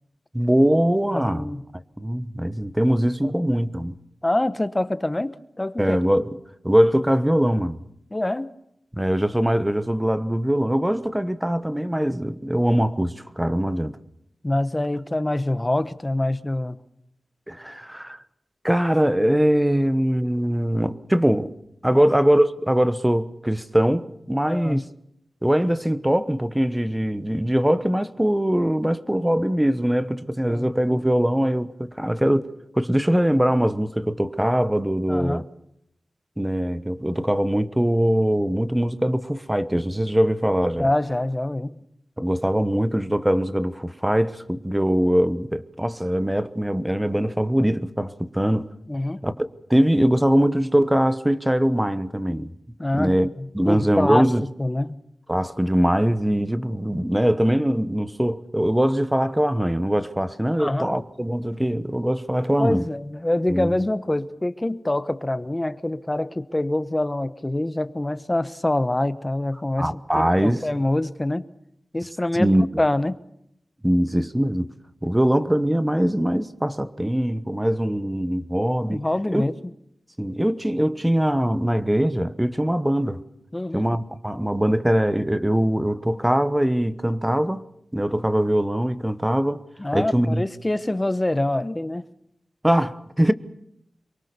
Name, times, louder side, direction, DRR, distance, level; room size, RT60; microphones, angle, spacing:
voice 1, 0.3-1.4 2.0-4.0 5.8-6.3 6.6-7.8 8.9-14.0 17.5-18.2 18.6-21.5 21.8-24.9 25.4-35.5 36.4-40.9 42.2-48.7 49.2-52.5 52.9-53.3 53.5-54.4 55.3-62.9 63.5-63.8 69.8-70.6 72.4-72.8 73.8-74.7 75.0-79.0 79.3-79.4 80.2-83.2 83.7-87.7 87.9-89.6 89.9-90.4 92.6-93.3, equal, 10° right, 1.1 m, -22 dB
voice 2, 1.1-1.6 3.2-3.3 4.2-6.0 8.1-8.5 14.4-16.8 21.9-22.0 24.5-24.8 30.5-30.7 35.1-35.4 40.8-41.8 48.9-49.3 52.8-54.3 54.6-55.0 60.6-60.9 62.6-71.5 71.9-72.5 72.8-73.2 78.8-79.5 83.5-83.9 89.8-92.1, left 1 dB, 20° left, 1.1 m, -25 dB
24.5 x 23.0 x 6.8 m
wide cardioid pair, 75°, 0 cm